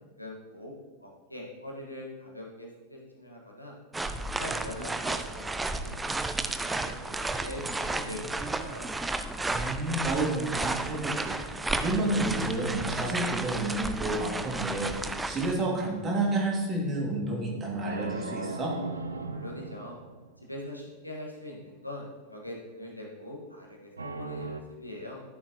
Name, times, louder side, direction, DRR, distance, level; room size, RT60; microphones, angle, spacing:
voice 1, 0.2-0.7 1.0-3.7 4.1-8.9 19.2-20.0 20.4-25.2, left 1 dB, 85° left, -1 dB, 1.7 m, -42 dB
sound 1, 3.9-15.5, right 2 dB, 10° right, 0.5 m, -33 dB
sound 2, 8.0-9.2 11.8-14.5 17.8-20.6 24.0-24.6, right 3 dB, 75° right, 0.5 m, -39 dB
voice 2, 9.4-18.7, right 2 dB, 25° right, -2 dB, 2.5 m, -30 dB
12.5 x 7.2 x 3.1 m, 1.3 s
figure-of-eight pair, 90°, 0 cm